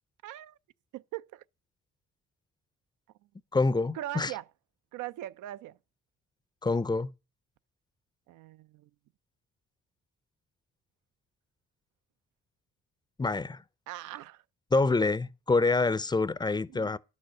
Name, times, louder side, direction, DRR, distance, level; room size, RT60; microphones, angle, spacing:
voice 1, 0.2-0.6 0.9-1.4 3.9-4.4 4.9-5.8 8.3-8.9 13.9-14.4 16.7-17.0, right 14 dB, 85° right, 0.5 m, -40 dB
voice 2, 3.5-4.3 6.6-7.1 13.2-13.6 14.7-17.0, left 3 dB, 15° left, 0.5 m, -26 dB
11.0 x 6.4 x 6.5 m
cardioid pair, 90°, 30 cm